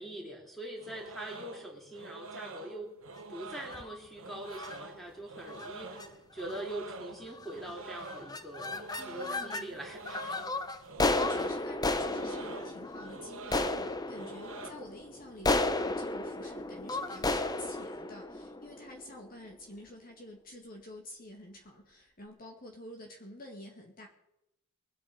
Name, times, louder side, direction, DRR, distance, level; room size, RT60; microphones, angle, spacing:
voice 1, 0.0-2.9 3.3-6.0 6.3-10.3, right 1 dB, ahead, -1 dB, 3.7 m, -43 dB
sound 1, 0.8-14.7, right 3 dB, 65° right, 1.3 m, -47 dB
sound 2, 3.6-4.0 4.5-4.8 5.5-5.7 6.0-6.1 6.4-6.8 7.4-7.7 8.0-9.7 10.1-19.2, left 2 dB, 15° left, 0.7 m, -34 dB
voice 2, 9.0-9.8 11.0-24.1, left 1 dB, 40° left, 1 dB, 2.0 m, -48 dB
23.0 x 8.6 x 5.2 m, 0.85 s
head